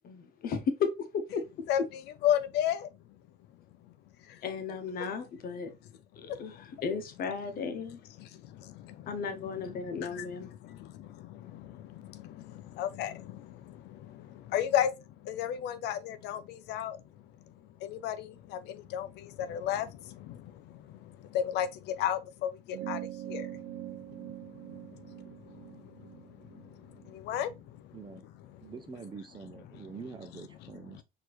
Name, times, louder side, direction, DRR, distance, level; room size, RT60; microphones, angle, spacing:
voice 1, 0.0-1.4 4.4-5.7 6.2-8.0 9.1-10.5, left 5 dB, 60° left, 1.0 m, -34 dB
voice 2, 1.7-2.9 4.3-4.4 6.3-6.4 8.2-9.1 9.4-14.9 15.2-17.0 17.8-23.6 24.1-24.3 24.6-26.2 26.5-28.0, left 10 dB, 80° left, 0.5 m, -35 dB
sound 1, 22.7-27.6, right 14 dB, 85° right, 0.5 m, -43 dB
voice 3, 27.9-28.3 28.6-31.0, right 5 dB, 25° right, 0.7 m, -45 dB
4.4 x 2.9 x 3.0 m
cardioid pair, 110°, 17 cm